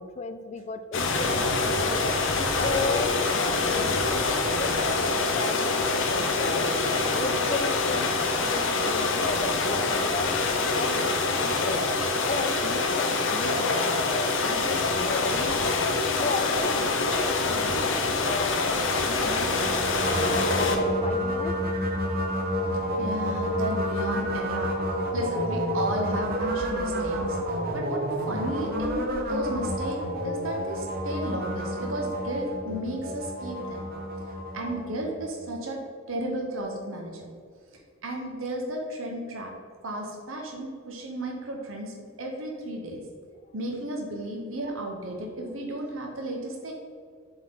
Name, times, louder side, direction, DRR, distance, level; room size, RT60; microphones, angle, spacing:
voice 1, 0.0-2.0 2.3-6.8 7.1-10.3 10.8-11.8 12.3-15.6 16.2-18.8 19.0-19.8 20.2-21.6, left 4 dB, 35° left, 10 dB, 0.4 m, -35 dB
sound 1, 0.9-20.8, left 3 dB, 65° left, 0.8 m, -25 dB
sound 2, 19.3-35.6, equal, 50° right, 1.0 m, -29 dB
voice 2, 23.0-24.8 25.1-27.4 27.7-29.0 29.3-30.0 30.2-33.9 34.5-37.3 38.0-39.5 39.8-43.0 43.5-46.7, right 1 dB, 75° right, 1 dB, 1.0 m, -33 dB
7.7 x 4.5 x 3.8 m, 2.1 s
head